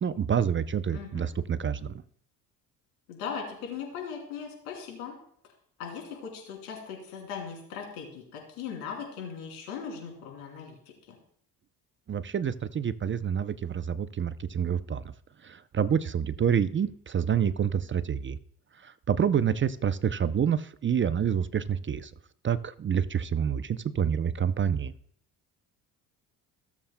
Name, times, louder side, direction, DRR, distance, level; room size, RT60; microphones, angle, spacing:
voice 1, 0.0-1.9 12.1-15.0 15.4-18.4 18.8-22.1 22.4-24.9, right 8 dB, 30° right, 14 dB, 0.5 m, -27 dB
voice 2, 0.9-1.3 3.1-5.2 5.8-10.8, left 6 dB, 85° left, 0 dB, 3.0 m, -39 dB
17.0 x 7.3 x 2.2 m, 0.64 s
hypercardioid pair, 60°, 43 cm